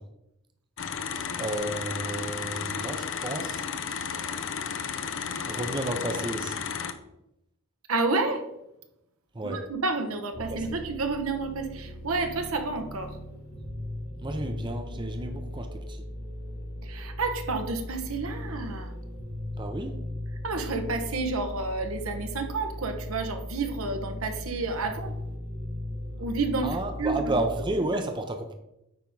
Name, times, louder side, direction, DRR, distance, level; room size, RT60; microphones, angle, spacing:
sound 1, 0.8-6.9, left 6 dB, 60° left, 0.6 m, -33 dB
voice 1, 1.4-3.7 5.5-6.7 9.3-9.6 10.5-10.8 14.2-16.0 19.6-20.0 26.6-28.5, right 1 dB, 20° right, 6 dB, 0.6 m, -32 dB
voice 2, 7.9-8.4 9.4-13.2 16.8-18.9 20.4-25.1 26.2-27.4, right 3 dB, 75° right, 6 dB, 1.0 m, -30 dB
sound 2, 10.3-27.7, left 1 dB, 80° left, 2.6 m, -38 dB
9.1 x 3.6 x 5.4 m, 0.86 s
head